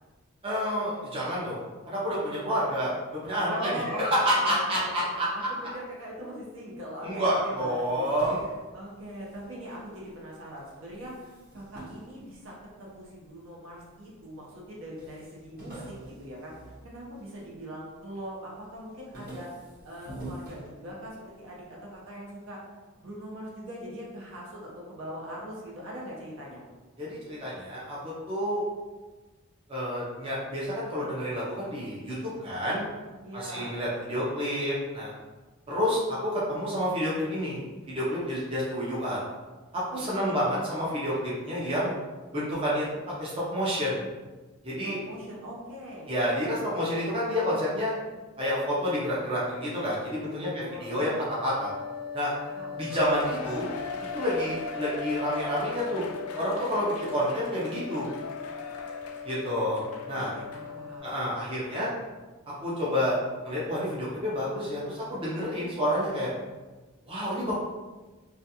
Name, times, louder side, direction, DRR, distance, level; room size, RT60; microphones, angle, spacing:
voice 1, 0.4-2.9 3.2-3.7 4.0-5.3 7.0-8.4 27.0-28.6 29.7-32.8 33.3-35.1 35.7-39.2 39.7-41.9 42.3-42.9 43.2-44.0 44.6-45.0 46.1-47.9 48.4-51.7 52.1-52.3 52.8-53.7 54.1-56.0 56.4-58.1 59.2-60.3 61.0-61.9 62.6-63.2 63.4-66.3 67.1-67.6, equal, 25° right, -7 dB, 0.5 m, -29 dB
voice 2, 3.5-8.1 8.4-16.5 16.8-19.5 19.8-22.6 23.0-26.6 33.2-33.8 39.9-40.5 44.8-46.1 50.4-51.0 52.4-52.8 60.1-61.1, equal, 65° right, -4 dB, 0.7 m, -41 dB
sound 1, 7.6-10.2 10.5-13.1 13.7-14.3 14.6-14.7 15.0-17.6 18.0-18.4 18.7-21.3, right 1 dB, 40° right, 0.9 m, -46 dB
sound 2, 51.3-61.0, left 6 dB, 20° left, 0.6 m, -40 dB
Cheering, 52.9-60.7 61.1-61.2 61.8-61.9, left 4 dB, 80° left, 0.3 m, -40 dB
2.4 x 2.3 x 2.8 m, 1.3 s
head